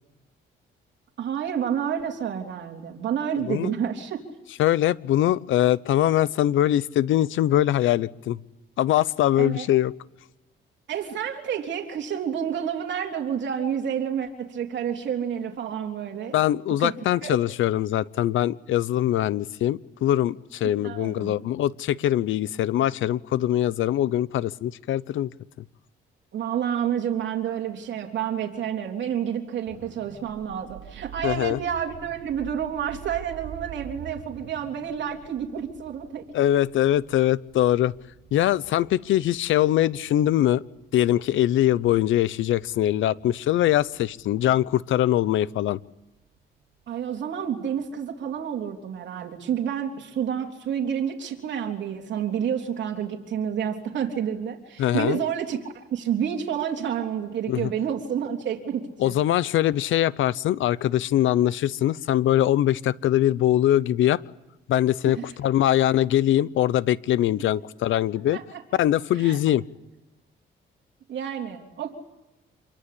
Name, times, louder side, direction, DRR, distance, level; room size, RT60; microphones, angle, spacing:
voice 1, 1.2-4.2 9.4-9.7 10.9-16.4 16.8-16.9 17.2-17.4 20.8-21.4 26.3-36.2 46.9-59.2 65.0-65.3 68.3-68.6 69.1-69.4 71.1-71.9, right 8 dB, 65° right, 3.5 m, -29 dB
voice 2, 3.4-3.7 4.6-8.4 8.8-9.9 16.3-25.3 31.2-31.6 36.3-37.9 38.3-40.6 40.9-45.8 54.8-55.2 57.5-57.7 59.0-64.2 64.7-68.4 68.7-69.6, left 12 dB, 80° left, 0.9 m, -22 dB
sound 1, 29.7-47.5 47.9-48.1, right 10 dB, 80° right, 3.6 m, -47 dB
27.5 x 22.5 x 8.6 m
cardioid pair, 90°, 20 cm